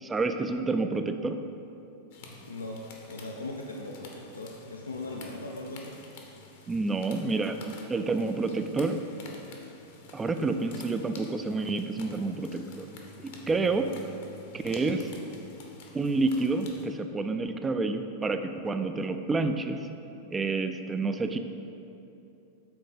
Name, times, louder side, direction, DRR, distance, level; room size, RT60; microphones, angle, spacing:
voice 1, 0.0-1.4 6.7-7.6 7.9-9.0 10.1-12.9 13.2-13.9 14.5-15.1 15.9-19.9 20.3-21.4, right 3 dB, 15° right, 8 dB, 0.3 m, -29 dB
sound 1, 2.1-16.9, left 3 dB, 55° left, 0.8 m, -49 dB
voice 2, 2.4-6.0, left 2 dB, 75° left, 0 dB, 0.4 m, -39 dB
6.1 x 4.0 x 5.1 m, 2.8 s
figure-of-eight pair, 90°, 0 cm